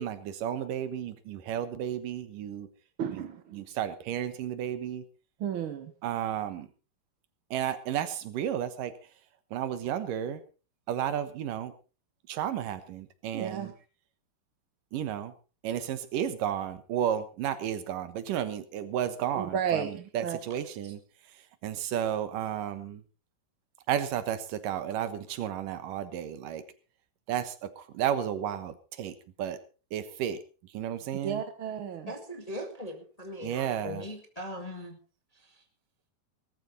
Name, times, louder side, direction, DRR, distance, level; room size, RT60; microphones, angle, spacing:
voice 1, 0.0-2.7 3.1-5.0 6.0-6.7 7.5-8.9 9.5-10.4 10.9-11.7 12.3-13.7 14.9-15.3 15.6-21.0 21.6-23.0 23.9-26.6 27.3-29.6 29.9-30.4 30.7-31.4 33.4-34.1, right 10 dB, 85° right, 11 dB, 2.9 m, -32 dB
voice 2, 3.0-3.6 5.4-5.9 13.3-13.7 19.3-20.4 31.2-32.1, right 8 dB, 65° right, 8 dB, 1.3 m, -33 dB
voice 3, 32.1-35.0, left 1 dB, 15° left, 4 dB, 1.4 m, -40 dB
18.5 x 13.5 x 4.0 m, 0.35 s
omnidirectional pair, 3.7 m